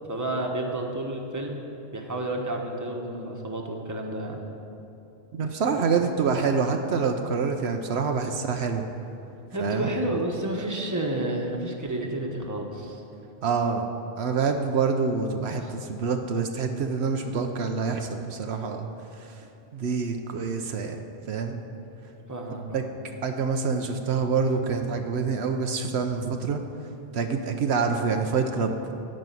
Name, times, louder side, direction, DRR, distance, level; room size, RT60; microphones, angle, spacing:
voice 1, 0.1-1.6 1.9-4.4 5.9-6.1 9.5-13.0 15.6-15.7 22.3-22.9, right 1 dB, 15° right, 0 dB, 1.2 m, -30 dB
voice 2, 5.3-8.8 9.6-9.9 13.4-13.8 14.2-18.9 19.7-21.0 21.3-21.6 22.7-22.8 23.2-26.6 27.1-28.7, right 5 dB, 75° right, 5 dB, 1.0 m, -26 dB
14.0 x 5.4 x 9.2 m, 2.8 s
omnidirectional pair, 1.1 m